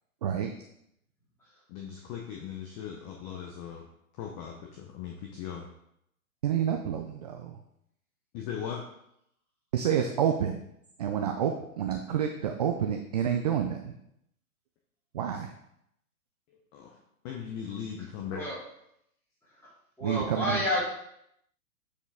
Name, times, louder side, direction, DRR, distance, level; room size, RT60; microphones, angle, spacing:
voice 1, 1.7-3.9 4.1-5.7 8.3-8.8 16.7-17.0 17.2-18.5, left 8 dB, 25° left, 1 dB, 0.7 m, -38 dB
voice 2, 6.4-7.5 9.7-10.6 11.0-13.9 15.1-15.5 20.0-20.6, right 9 dB, 30° right, 4 dB, 0.4 m, -28 dB
voice 3, 20.0-20.9, left 1 dB, 5° left, -8 dB, 2.9 m, -29 dB
8.5 x 4.9 x 3.5 m, 0.76 s
hypercardioid pair, 130°, 44 cm